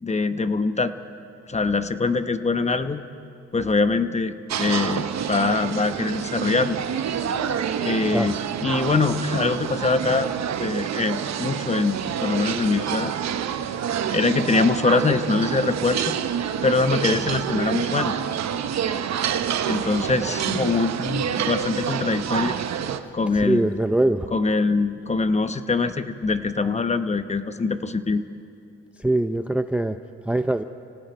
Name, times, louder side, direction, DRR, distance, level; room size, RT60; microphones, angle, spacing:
voice 1, 0.0-0.9 1.5-3.0 3.5-6.8 7.8-10.3 10.6-13.1 14.1-16.1 16.6-18.2 19.7-22.6 23.1-23.7 24.3-28.2, left 3 dB, 20° left, 10 dB, 1.0 m, -23 dB
sound 1, 4.5-23.0, right 8 dB, 60° right, 1.1 m, -27 dB
voice 2, 23.4-24.3 29.0-30.0 30.3-30.6, right 1 dB, 5° right, 9 dB, 0.5 m, -22 dB
30.0 x 18.0 x 5.1 m, 2.5 s
cardioid pair, 90°, 30 cm